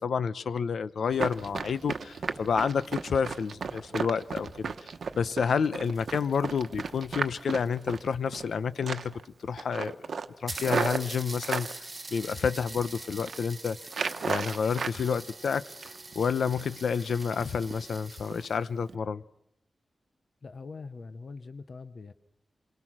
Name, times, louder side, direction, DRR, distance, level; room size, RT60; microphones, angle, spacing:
voice 1, 0.0-4.7 5.1-9.1 9.4-10.0 10.4-11.7 12.1-13.8 14.2-15.6 16.1-19.2, left 6 dB, 85° left, 0.8 m, -29 dB
Run, 1.1-8.5 8.8-9.2 9.6-11.7 12.3-12.9 13.1-13.4 13.9-15.0 15.3-16.1 16.5-16.7 17.0-17.4 17.7-17.8 18.3-18.5 18.8-18.9, right 5 dB, 70° right, 1.0 m, -34 dB
sound 1, 5.6-8.3 9.1-9.2 9.5-9.6 9.9-10.0 10.5-18.7, right 2 dB, 25° right, 1.3 m, -44 dB
voice 2, 20.4-22.1, left 4 dB, 45° left, 0.9 m, -43 dB
28.5 x 22.5 x 6.2 m
wide cardioid pair, 180°, 0 cm